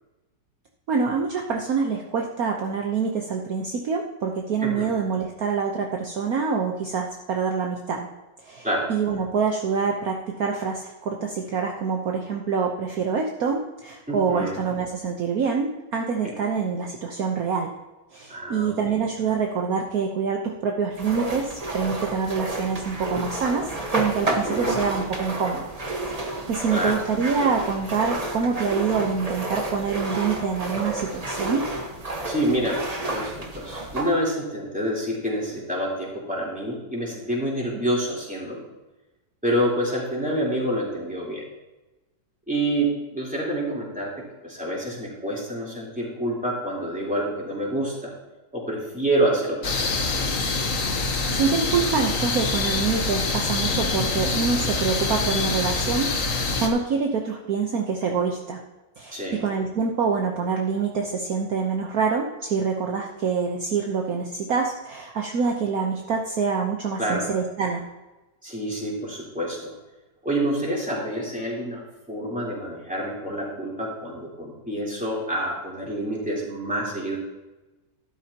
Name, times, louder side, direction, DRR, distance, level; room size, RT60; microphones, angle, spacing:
voice 1, 0.9-8.1 8.4-17.7 18.1-25.7 26.1-31.6 51.3-58.6 59.0-67.8, right 5 dB, 60° right, 1 dB, 1.3 m, -26 dB
voice 2, 4.6-4.9 8.6-8.9 14.1-14.6 16.2-16.3 18.3-19.0 24.3-24.8 26.7-27.0 32.2-38.7 39.4-41.5 42.5-48.1 48.5-50.1 59.1-59.4 67.0-67.3 68.4-69.7 70.2-71.8 72.1-77.2, right 1 dB, 5° right, -5 dB, 3.6 m, -27 dB
sound 1, 21.0-34.1, right 2 dB, 25° right, 1.2 m, -30 dB
sound 2, 49.6-56.7, left 3 dB, 50° left, 1.5 m, -25 dB
13.0 x 12.0 x 2.9 m, 1.1 s
omnidirectional pair, 1.9 m